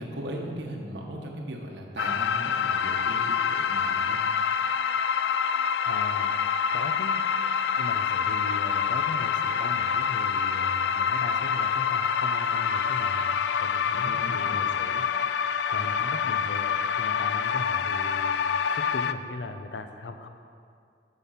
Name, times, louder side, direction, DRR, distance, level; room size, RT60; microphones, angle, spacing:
voice 1, 0.0-4.2 13.9-14.6, right 1 dB, 80° right, 1 dB, 1.3 m, -38 dB
sound 1, 2.0-19.1, left 7 dB, 70° left, 0.3 m, -26 dB
voice 2, 5.3-6.3 6.7-7.3 7.8-20.3, left 2 dB, 90° left, 7 dB, 0.7 m, -39 dB
7.8 x 7.4 x 5.8 m, 2.4 s
head